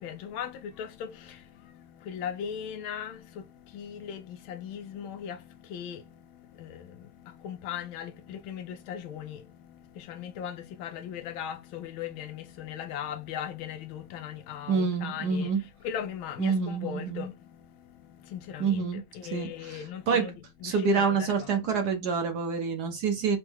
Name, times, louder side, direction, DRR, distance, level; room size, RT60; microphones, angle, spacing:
voice 1, 0.0-21.8, left 9 dB, 80° left, 1.4 m, -39 dB
voice 2, 14.7-15.6 16.4-17.3 18.6-19.0 19.3-20.3 20.6-23.4, right 5 dB, 60° right, 1.2 m, -27 dB
4.3 x 3.7 x 3.0 m
omnidirectional pair, 2.3 m